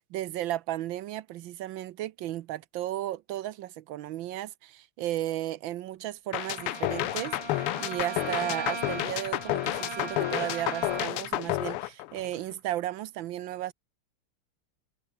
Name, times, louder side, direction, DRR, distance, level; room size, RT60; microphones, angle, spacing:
voice 1, 0.0-13.7, right 13 dB, 70° right, 1.3 m, -34 dB
sound 1, 6.3-12.5, left 18 dB, 85° left, 1.5 m, -31 dB
Bowed string instrument, 6.3-11.3, right 3 dB, 25° right, 3.4 m, -39 dB
omnidirectional pair, 2.4 m